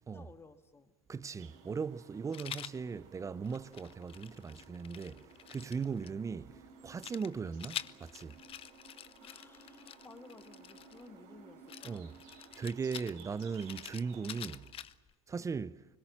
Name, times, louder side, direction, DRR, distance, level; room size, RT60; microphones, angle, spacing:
voice 1, 0.1-1.0 9.2-12.1, left 3 dB, 15° left, 1.8 m, -56 dB
voice 2, 1.1-8.4 11.8-12.1 12.5-14.7 15.3-15.8, right 5 dB, 20° right, 0.7 m, -38 dB
sound 1, 1.4-14.7, right 5 dB, 65° right, 4.1 m, -57 dB
Rattle, 2.3-2.8 3.4-6.1 7.0-11.1 11.7-15.1, left 11 dB, 35° left, 0.7 m, -47 dB
25.0 x 22.0 x 7.4 m
hypercardioid pair, 100°, 17 cm